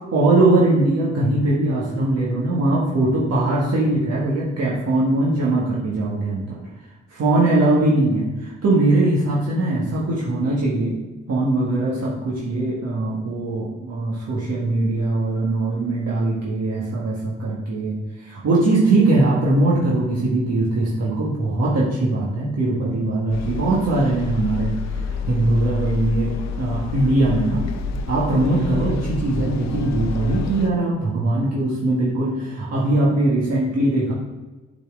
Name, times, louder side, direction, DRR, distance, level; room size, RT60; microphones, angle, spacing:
voice 1, 0.1-6.6 7.1-10.9 11.3-26.3 26.6-27.6 28.1-34.1, right 2 dB, 60° right, -5 dB, 1.6 m, -21 dB
sound 1, 23.3-30.7, left 5 dB, 65° left, 0.8 m, -28 dB
7.9 x 4.3 x 3.7 m, 1.2 s
cardioid pair, 90°, 30 cm